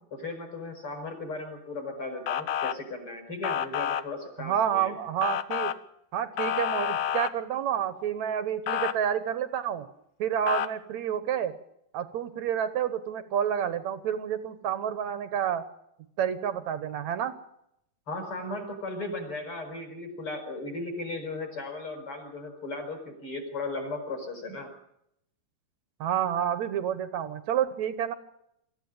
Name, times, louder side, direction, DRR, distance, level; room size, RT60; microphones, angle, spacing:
voice 1, 0.1-4.9 18.1-24.7, left 2 dB, 35° left, 4 dB, 6.0 m, -36 dB
Motor vehicle (road) / Siren, 2.3-2.7 3.4-4.0 5.2-5.7 6.4-7.3 8.7-8.9 10.5-10.7, left 9 dB, 80° left, 1.4 m, -28 dB
voice 2, 4.4-5.7 6.1-9.9 10.2-11.5 11.9-15.6 16.2-17.3 26.0-28.1, right 9 dB, 65° right, 12 dB, 2.1 m, -29 dB
24.0 x 15.0 x 8.9 m, 0.77 s
omnidirectional pair, 4.2 m